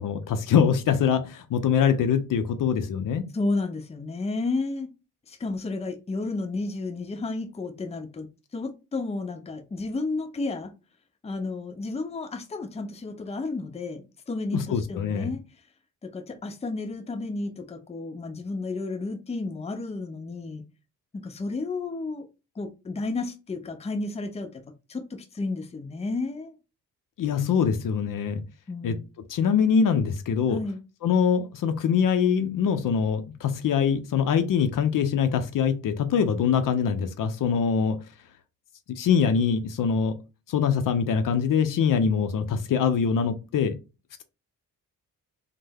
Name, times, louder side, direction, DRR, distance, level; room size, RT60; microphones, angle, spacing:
voice 1, 0.0-3.2 14.5-15.3 27.2-28.4 28.8-29.0 29.3-30.6 31.0-38.0 38.9-40.2 40.5-43.8, left 7 dB, 65° left, 0.6 m, -23 dB
voice 2, 3.3-4.9 5.3-8.3 8.5-10.7 11.2-15.4 16.0-20.6 21.1-22.3 22.6-24.6 24.9-26.6 28.7-29.1 30.5-30.8, left 3 dB, 20° left, 0.5 m, -32 dB
3.2 x 2.1 x 3.4 m
cardioid pair, 70°, 35 cm